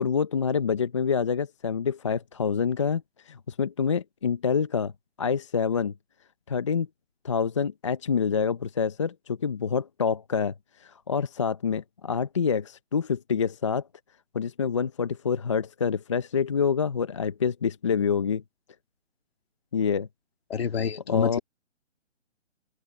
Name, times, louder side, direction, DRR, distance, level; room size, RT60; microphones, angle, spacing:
voice 1, 0.0-4.9 5.2-5.9 6.5-6.9 7.2-10.5 10.8-13.8 14.3-18.4 19.7-20.1 21.1-21.4, left 6 dB, 25° left, 0.7 m, -27 dB
voice 2, 20.5-21.4, left 7 dB, 55° left, 2.3 m, -28 dB
open air
hypercardioid pair, 165°, 36 cm